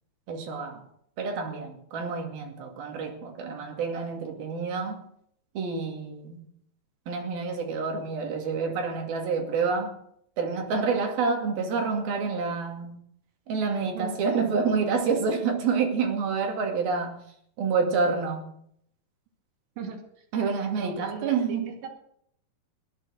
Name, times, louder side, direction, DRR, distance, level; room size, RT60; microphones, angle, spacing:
voice 1, 0.3-0.8 1.2-5.0 5.5-6.4 7.1-9.9 10.4-13.0 13.5-17.1 17.6-18.5 20.3-21.7, right 5 dB, 60° right, 2 dB, 4.1 m, -28 dB
voice 2, 19.8-20.3 20.8-21.9, right 5 dB, 85° right, 1 dB, 4.4 m, -37 dB
17.0 x 11.0 x 6.3 m, 0.69 s
omnidirectional pair, 4.9 m